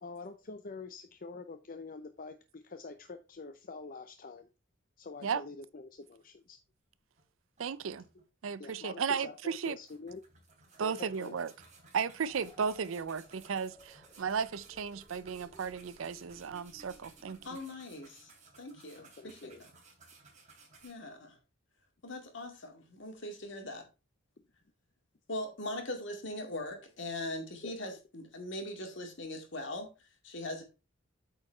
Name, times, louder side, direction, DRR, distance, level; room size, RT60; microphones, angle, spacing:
voice 1, 0.0-4.5 5.0-6.6 8.6-10.2 10.8-11.4 18.9-19.6 27.6-27.7, left 4 dB, 45° left, 0.6 m, -46 dB
sound 1, 7.2-7.3 7.6-8.5 8.9-9.0 9.5-20.9, right 3 dB, 40° right, 2.9 m, -59 dB
voice 2, 7.6-8.1 8.4-9.8 10.8-11.5 11.9-17.4, right 6 dB, 85° right, 0.5 m, -35 dB
sound 2, 12.2-17.6, equal, 5° right, 2.4 m, -60 dB
voice 3, 17.4-18.3 18.6-19.7 20.8-21.4 22.0-23.8 25.3-29.9 30.2-30.6, left 1 dB, 65° left, 2.2 m, -41 dB
8.4 x 4.6 x 4.4 m
head